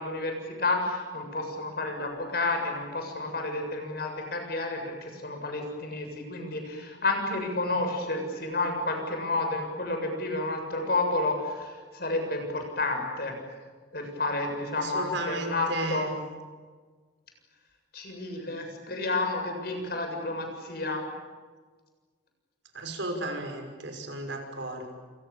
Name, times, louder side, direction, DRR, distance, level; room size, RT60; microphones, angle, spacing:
voice 1, 0.0-13.3 13.9-16.1 17.9-21.0, left 2 dB, 55° left, 4 dB, 7.3 m, -30 dB
voice 2, 14.8-16.1 22.7-24.9, right 2 dB, 75° right, 4 dB, 6.1 m, -34 dB
29.5 x 27.5 x 7.3 m, 1.5 s
head